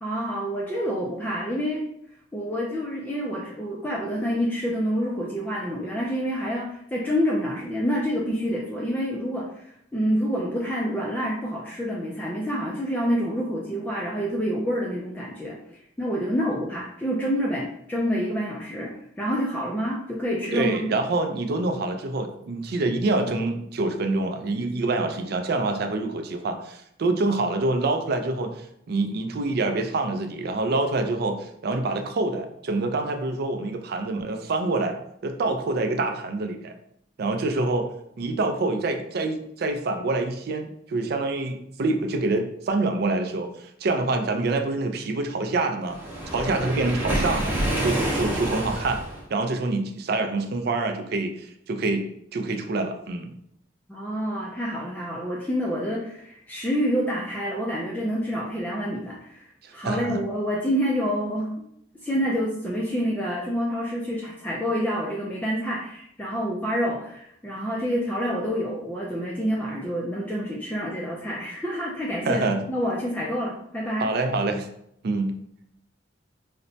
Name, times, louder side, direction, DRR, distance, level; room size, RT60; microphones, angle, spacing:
voice 1, 0.0-1.8 2.3-20.9 53.9-61.5 62.0-74.1, equal, 10° left, -4 dB, 0.3 m, -28 dB
voice 2, 20.5-35.0 35.2-36.7 37.2-37.9 38.2-46.0 46.3-47.6 47.8-49.0 49.3-52.0 52.3-53.3 59.6-60.2 72.3-72.6 74.0-74.7 75.0-75.4, right 2 dB, 60° right, 5 dB, 0.4 m, -26 dB
Waves surf, 45.9-49.2, right 1 dB, 10° right, 0.7 m, -27 dB
4.1 x 2.1 x 2.6 m, 0.73 s
head